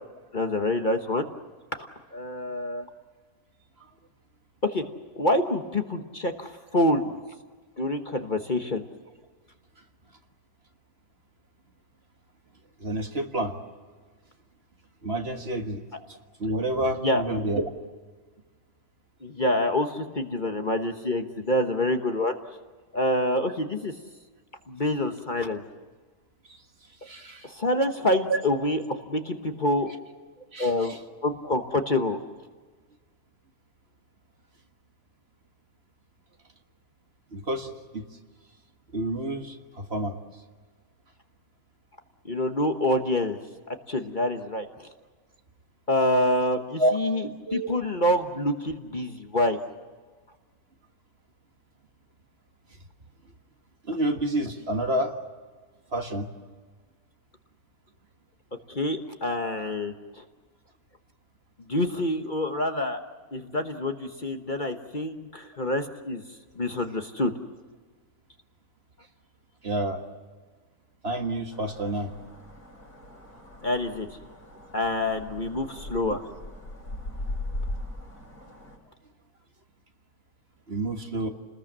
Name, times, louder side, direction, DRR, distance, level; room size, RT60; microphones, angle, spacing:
voice 1, 0.3-1.3 1.8-2.8 4.6-4.8 5.2-7.1 7.8-8.8 17.0-17.2 19.2-22.3 22.9-23.9 24.7-25.6 27.4-29.9 30.6-32.2 42.2-43.4 43.7-44.9 45.9-49.6 58.7-60.2 61.7-63.0 63.3-66.2 66.6-67.3 73.6-74.1 74.7-76.2, left 1 dB, 35° left, 5 dB, 1.3 m, -27 dB
voice 2, 12.8-13.6 15.0-15.8 16.4-17.7 27.0-27.5 28.3-28.4 30.5-31.0 37.3-38.0 38.9-40.2 46.8-46.9 47.5-47.7 53.9-55.1 55.9-56.3 69.6-70.0 71.0-72.1 80.7-81.3, right 1 dB, 45° right, 4 dB, 1.8 m, -28 dB
sound 1, 71.5-78.8, left 1 dB, 85° left, 5.5 m, -39 dB
30.0 x 20.5 x 7.5 m, 1.4 s
omnidirectional pair, 1.6 m